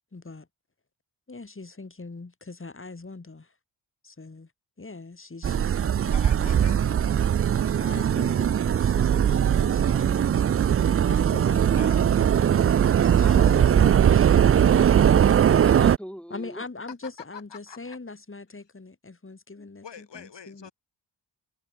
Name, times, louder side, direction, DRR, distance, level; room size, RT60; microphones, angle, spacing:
voice 1, 0.1-0.5 1.3-3.5 4.0-4.5 4.8-6.2 6.6-7.1 7.8-12.4 13.0-14.5 16.3-20.7, left 3 dB, 25° left, 3.1 m, -42 dB
sound 1, 5.4-16.0, right 9 dB, 35° right, 0.4 m, -20 dB
voice 2, 6.1-6.8 11.7-12.1 17.3-18.0 19.8-20.7, left 7 dB, 70° left, 4.3 m, -44 dB
voice 3, 15.1-16.6 19.6-19.7, equal, ahead, 2.3 m, -42 dB
cardioid pair, 60°, 45 cm